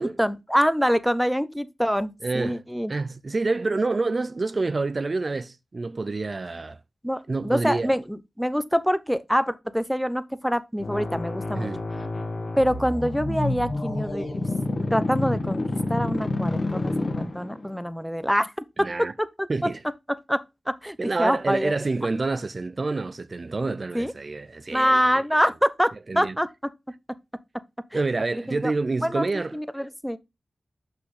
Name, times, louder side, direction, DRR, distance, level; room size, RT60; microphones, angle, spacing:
voice 1, 0.2-2.9 7.0-11.7 12.6-14.5 14.9-15.6 15.9-18.5 19.0-19.1 20.3-20.4 20.7-21.7 23.9-24.1 24.7-26.5 27.9-28.0 28.5-28.7 29.0-29.2 29.5-30.2, equal, ahead, 0.7 m, -25 dB
voice 2, 2.2-2.6 2.9-6.8 7.3-7.9 11.5-11.8 18.8-19.1 19.5-19.8 21.0-25.2 26.1-26.4 27.9-29.6, right 3 dB, 55° right, 0.4 m, -28 dB
sound 1, 10.8-17.7, left 2 dB, 65° left, 1.4 m, -28 dB
6.0 x 5.7 x 3.2 m
cardioid pair, 45°, 0 cm